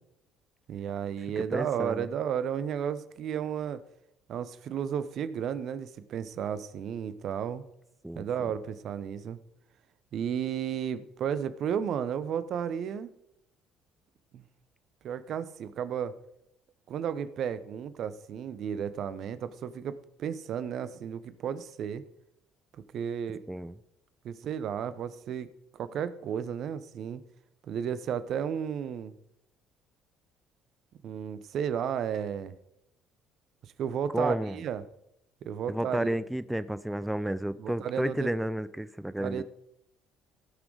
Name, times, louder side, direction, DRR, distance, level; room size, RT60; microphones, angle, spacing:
voice 1, 0.7-3.8 4.3-7.6 8.1-9.4 10.1-13.1 14.3-14.4 15.0-16.1 16.9-22.0 22.9-23.4 24.2-25.5 25.7-27.2 27.7-29.2 31.0-32.5 33.6-34.8 35.4-36.2 37.6-38.3 39.2-39.4, right 8 dB, 55° right, 14 dB, 0.8 m, -33 dB
voice 2, 1.4-2.1 8.0-8.5 23.5-23.7 34.1-34.6 35.7-39.4, right 1 dB, 5° right, 14 dB, 0.5 m, -32 dB
16.0 x 6.1 x 4.9 m, 0.79 s
figure-of-eight pair, 55°, 0 cm